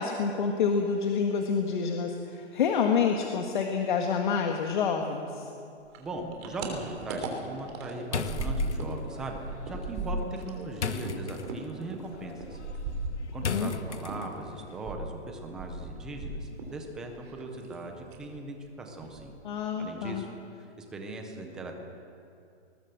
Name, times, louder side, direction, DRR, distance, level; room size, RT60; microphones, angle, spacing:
voice 1, 0.0-5.5 13.4-13.7 19.4-20.2, left 6 dB, 45° left, 3 dB, 1.8 m, -28 dB
sound 1, 5.9-9.0 9.2-13.7 14.0-16.8 17.1-17.8 18.1-18.3 18.6-18.7 19.0-19.6, right 2 dB, 25° right, 3.2 m, -37 dB
voice 2, 6.0-12.6 13.3-19.3 19.8-20.3 20.6-21.7, right 2 dB, ahead, 3 dB, 0.5 m, -39 dB
sound 2, 8.1-14.6, left 5 dB, 80° left, 1.6 m, -38 dB
20.0 x 19.0 x 7.8 m, 2.5 s
hypercardioid pair, 160°, 34 cm